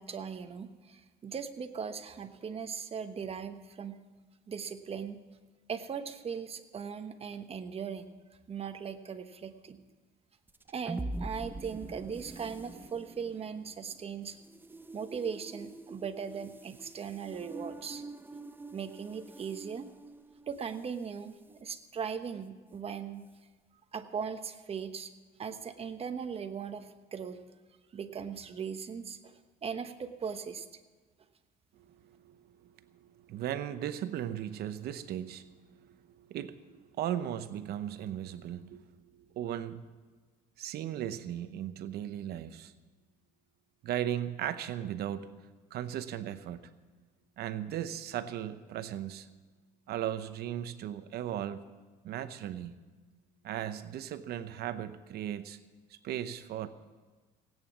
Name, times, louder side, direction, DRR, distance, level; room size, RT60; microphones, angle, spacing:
voice 1, 0.0-4.0 4.5-5.2 5.7-8.1 8.5-9.8 10.7-14.4 14.9-18.0 18.7-19.9 20.5-23.3 23.9-25.1 25.4-27.4 27.9-30.7, right 6 dB, 35° right, 8 dB, 1.1 m, -39 dB
sound 1, 10.5-21.0, right 2 dB, 10° right, 0.6 m, -45 dB
voice 2, 32.0-32.4 33.0-38.9 39.3-39.9 40.6-42.7 43.8-45.3 45.7-46.7 47.4-49.3 49.9-51.6 52.0-52.8 53.4-55.6 56.0-56.7, right 11 dB, 70° right, 12 dB, 0.8 m, -37 dB
17.5 x 9.2 x 7.2 m, 1.4 s
cardioid pair, 110°, 17 cm